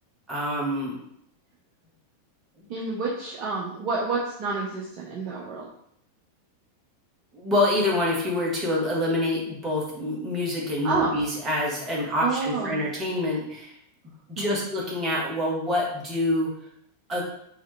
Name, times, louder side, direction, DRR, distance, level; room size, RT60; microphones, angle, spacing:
voice 1, 0.3-1.0 7.3-13.7 14.3-16.5 17.1-17.2, left 1 dB, 20° right, -4 dB, 1.4 m, -26 dB
voice 2, 2.7-5.7 10.8-11.2 12.2-12.8 14.4-14.6, right 4 dB, 40° right, -4 dB, 0.7 m, -29 dB
3.8 x 3.1 x 3.4 m, 0.72 s
figure-of-eight pair, 90°, 0 cm